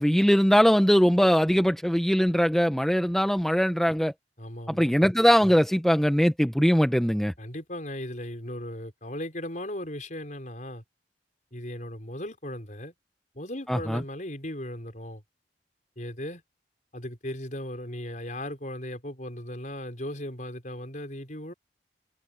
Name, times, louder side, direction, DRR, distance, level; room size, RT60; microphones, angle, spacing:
voice 1, 0.0-4.1 4.7-7.3 13.7-14.0, equal, ahead, 0.7 m, -21 dB
voice 2, 4.4-4.9 7.4-10.8 11.5-12.9 13.3-15.2 16.0-16.4 16.9-21.5, left 1 dB, 45° left, 5.4 m, -37 dB
open air
head